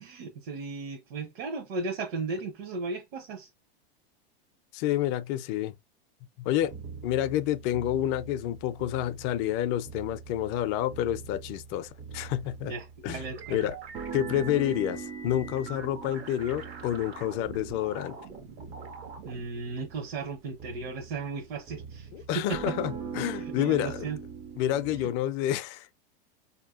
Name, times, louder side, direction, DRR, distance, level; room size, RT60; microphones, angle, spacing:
voice 1, 0.0-3.5 12.6-13.4 19.2-22.1 22.3-22.7 23.6-24.2 25.0-25.1, right 4 dB, 60° right, 1.0 m, -35 dB
voice 2, 4.7-5.8 6.4-6.7 7.0-12.7 13.0-13.8 14.1-18.2 22.1-24.1 24.6-25.9, left 12 dB, 40° left, 0.4 m, -29 dB
sound 1, 6.6-25.1, right 6 dB, 25° right, 0.4 m, -42 dB
sound 2, 13.4-19.5, right 4 dB, 85° right, 1.3 m, -45 dB
4.3 x 2.8 x 2.4 m
hypercardioid pair, 120°, 31 cm